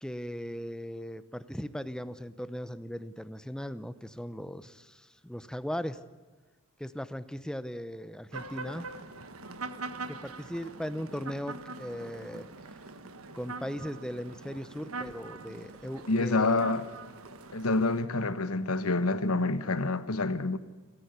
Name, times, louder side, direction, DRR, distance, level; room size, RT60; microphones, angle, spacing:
voice 1, 0.0-6.0 6.8-8.9 10.1-12.5 13.4-16.6, equal, 5° left, 0.7 m, -38 dB
sound 1, 8.3-18.0, right 3 dB, 80° right, 1.5 m, -43 dB
voice 2, 16.1-16.9 17.5-20.6, left 3 dB, 90° left, 1.3 m, -27 dB
29.0 x 14.5 x 8.2 m
head